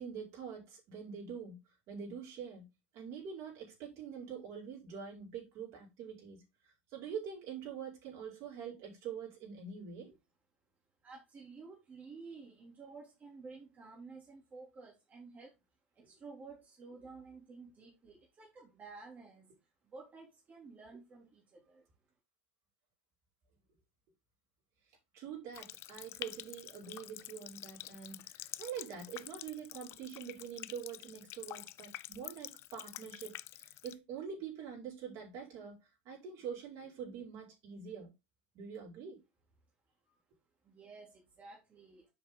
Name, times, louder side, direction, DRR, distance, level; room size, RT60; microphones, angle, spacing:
voice 1, 0.0-1.6 1.9-2.7 2.9-10.2 25.1-38.1 38.5-39.2, right 7 dB, 55° right, 5.3 m, -45 dB
voice 2, 11.0-15.5 15.9-19.6 19.8-21.9 40.6-42.1, right 4 dB, 30° right, 3.1 m, -52 dB
Water tap faucet, 25.5-33.9, left 15 dB, 45° left, 0.4 m, -48 dB
7.3 x 5.7 x 3.8 m
supercardioid pair, 105°, 6 cm